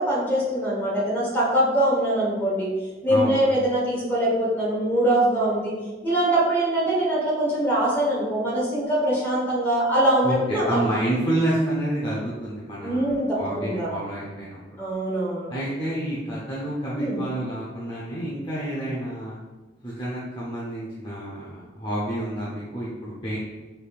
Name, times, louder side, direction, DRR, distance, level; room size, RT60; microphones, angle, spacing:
voice 1, 0.0-2.7 3.0-5.7 6.0-10.9 12.8-13.9 14.8-15.5 16.9-17.2, right 1 dB, 10° left, -6 dB, 1.2 m, -23 dB
voice 2, 3.1-3.5 10.2-14.6 15.5-19.4 19.8-23.4, right 1 dB, 30° left, -7 dB, 0.7 m, -29 dB
5.1 x 3.3 x 2.4 m, 1.3 s
head